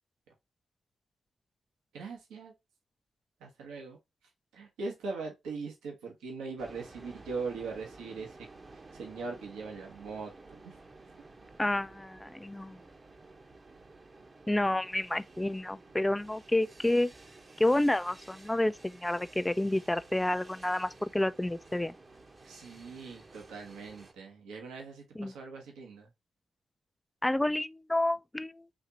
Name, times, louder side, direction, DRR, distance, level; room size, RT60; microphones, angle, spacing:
voice 1, 1.9-2.5 3.4-4.0 4.5-8.5 8.9-10.8 22.4-26.1, right 4 dB, 80° right, 1.0 m, -41 dB
sound 1, 6.6-24.1, right 3 dB, 40° right, 0.9 m, -53 dB
voice 2, 11.6-12.8 14.5-17.1 17.6-21.9 25.2-25.3 27.2-28.6, left 1 dB, 15° left, 0.3 m, -29 dB
4.2 x 2.9 x 2.7 m
hypercardioid pair, 40°, 0 cm